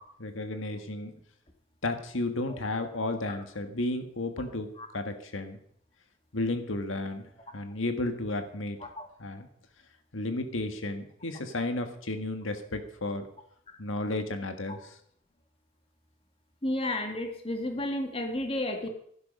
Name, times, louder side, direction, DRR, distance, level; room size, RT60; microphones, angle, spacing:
voice 1, 0.2-1.1 1.8-4.7 4.9-5.6 6.3-7.3 7.5-8.8 9.2-9.5 10.1-13.3 13.8-15.0, left 2 dB, 80° left, 7 dB, 1.6 m, -33 dB
voice 2, 16.6-18.9, left 1 dB, 30° left, 5 dB, 1.8 m, -32 dB
16.0 x 11.5 x 5.5 m, 0.66 s
head